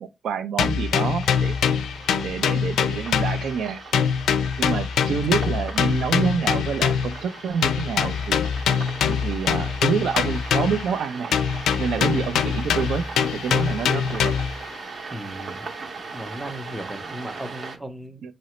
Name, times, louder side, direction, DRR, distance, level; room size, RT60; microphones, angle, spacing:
voice 1, 0.0-1.6 2.2-4.1 4.6-8.4 9.1-11.4 11.8-14.3 18.2-18.3, right 6 dB, 60° right, 0.4 m, -27 dB
Deep House, 0.6-3.7 3.9-7.2 7.6-11.0 11.3-14.6, left 7 dB, 80° left, 0.4 m, -23 dB
sound 1, 1.2-17.8, right 4 dB, 40° right, 0.7 m, -39 dB
voice 2, 15.1-15.7 16.1-18.3, right 1 dB, 5° right, 0.5 m, -36 dB
4.1 x 2.8 x 3.0 m
wide cardioid pair, 165°, 0 cm